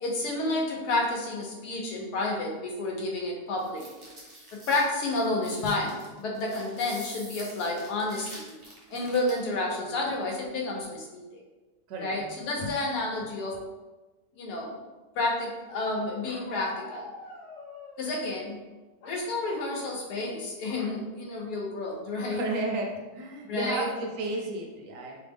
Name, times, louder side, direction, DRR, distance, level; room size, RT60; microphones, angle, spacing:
voice 1, 0.0-4.1 4.7-8.5 8.9-11.3 12.0-13.6 14.3-14.8 15.2-17.1 18.0-18.6 19.1-22.4 23.5-23.9, left 2 dB, 85° left, -1 dB, 1.2 m, -30 dB
sound 1, 3.6-9.5, right 1 dB, 30° right, 0.6 m, -46 dB
voice 2, 11.9-12.2 22.3-25.2, right 2 dB, 65° right, 1 dB, 0.9 m, -33 dB
Bark, 16.2-18.4 19.0-19.8 20.1-20.3 20.7-21.0 22.4-22.7 23.3-23.4 23.7-24.1, left 2 dB, 65° left, 0.8 m, -46 dB
3.2 x 2.1 x 3.4 m, 1.2 s
omnidirectional pair, 1.7 m